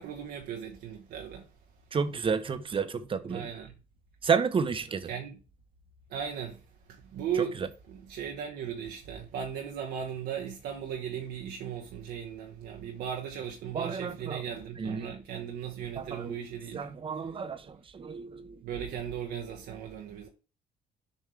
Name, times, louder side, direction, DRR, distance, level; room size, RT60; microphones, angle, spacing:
voice 1, 0.0-1.5 3.3-3.7 5.1-5.4 6.1-6.6 6.9-7.6 7.9-16.9 18.6-20.3, right 8 dB, 75° right, 1.2 m, -37 dB
voice 2, 1.9-3.5 4.2-5.1 7.4-7.7 13.7-14.4 14.8-15.1 16.0-16.4 16.7-18.5, right 6 dB, 30° right, 0.9 m, -31 dB
7.3 x 5.4 x 3.3 m
cardioid pair, 110°, 17 cm